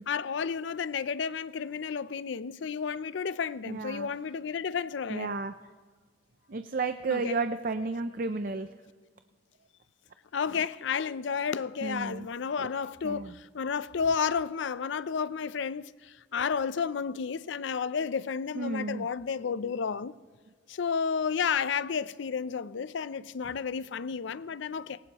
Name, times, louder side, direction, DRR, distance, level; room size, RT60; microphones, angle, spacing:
voice 1, 0.1-5.4 7.1-7.4 10.3-20.1 20.7-25.0, left 6 dB, 70° left, 0.4 m, -32 dB
voice 2, 3.7-4.1 5.1-5.5 6.5-8.7 11.8-12.3 13.0-13.3 18.5-19.1, right 3 dB, 45° right, 0.5 m, -32 dB
20.0 x 18.5 x 3.0 m
head